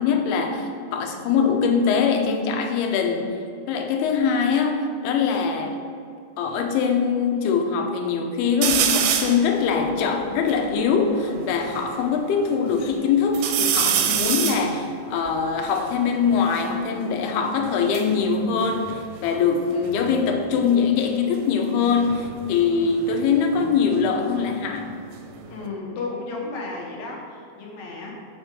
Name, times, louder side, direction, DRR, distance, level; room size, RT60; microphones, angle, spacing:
voice 1, 0.0-3.3 3.7-5.8 6.4-24.9, left 6 dB, 80° left, 4 dB, 2.8 m, -22 dB
sound 1, 8.6-9.5 10.0-10.1 10.3-11.8 12.4-12.9 13.3-16.7 17.7-19.6 19.8-20.3 21.9-24.5 24.9-25.7, right 9 dB, 85° right, 2.6 m, -27 dB
voice 2, 25.5-28.1, left 3 dB, 65° left, -2 dB, 1.9 m, -33 dB
7.3 x 6.1 x 6.5 m, 2.4 s
omnidirectional pair, 4.6 m